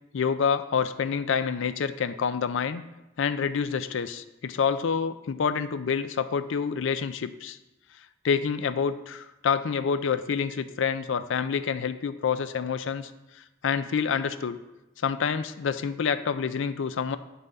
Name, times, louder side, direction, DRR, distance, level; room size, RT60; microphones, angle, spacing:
voice 1, 0.1-2.8 3.2-7.6 8.2-13.1 13.6-14.6 15.0-17.2, left 6 dB, 70° left, 13 dB, 0.4 m, -27 dB
7.9 x 5.6 x 4.0 m, 0.98 s
head